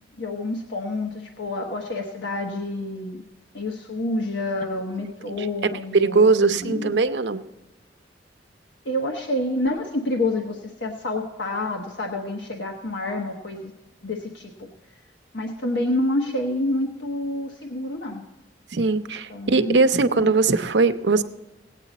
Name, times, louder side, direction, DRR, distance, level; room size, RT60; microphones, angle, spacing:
voice 1, 0.2-3.2 3.5-7.0 8.8-13.7 14.0-14.7 15.3-18.2 19.3-20.3, left 1 dB, 85° left, 1 dB, 1.2 m, -28 dB
voice 2, 4.9-5.5 5.9-7.4 18.7-21.2, right 4 dB, 75° right, 9 dB, 0.7 m, -20 dB
17.5 x 8.9 x 4.1 m, 1.1 s
head